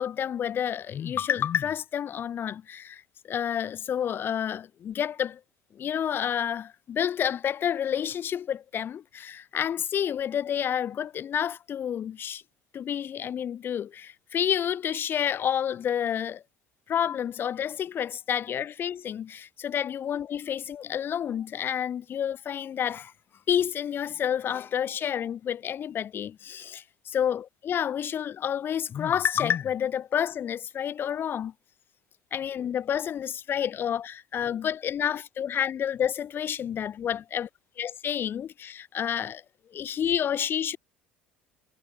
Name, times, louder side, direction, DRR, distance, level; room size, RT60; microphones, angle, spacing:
voice 1, 0.0-3.0 3.3-5.4 5.7-12.4 12.7-16.4 16.9-23.1 23.5-31.5 32.3-37.5 37.8-39.4 39.7-40.8, left 9 dB, 40° left, 7.6 m, -29 dB
figure-of-eight pair, 65°, 6 cm